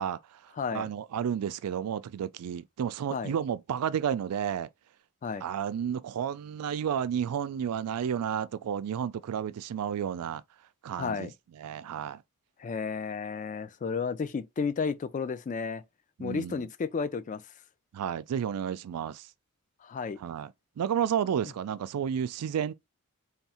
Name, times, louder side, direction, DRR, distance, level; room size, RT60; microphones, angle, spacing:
voice 1, 0.0-4.7 5.4-10.4 10.8-11.3 11.6-12.2 16.2-16.6 17.9-19.3 20.2-22.7, right 8 dB, 80° right, 0.3 m, -32 dB
voice 2, 0.6-0.9 3.1-3.3 5.2-5.4 11.0-11.3 12.6-15.8 16.2-17.4 19.8-20.2, left 5 dB, 35° left, 0.3 m, -32 dB
3.5 x 2.3 x 4.2 m
head